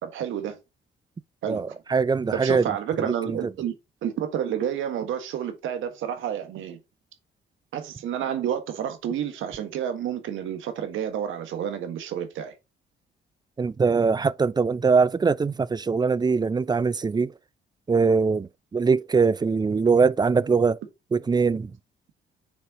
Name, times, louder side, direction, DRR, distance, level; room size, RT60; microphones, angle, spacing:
voice 1, 0.0-0.6 1.4-1.8 2.3-3.7 4.0-6.8 7.7-12.5, right 9 dB, 80° right, 1.6 m, -30 dB
voice 2, 1.5-2.7 3.0-3.4 13.6-17.3 17.9-20.8 21.1-21.7, right 5 dB, 20° right, 0.4 m, -22 dB
6.7 x 4.4 x 3.7 m
cardioid pair, 90°, 20 cm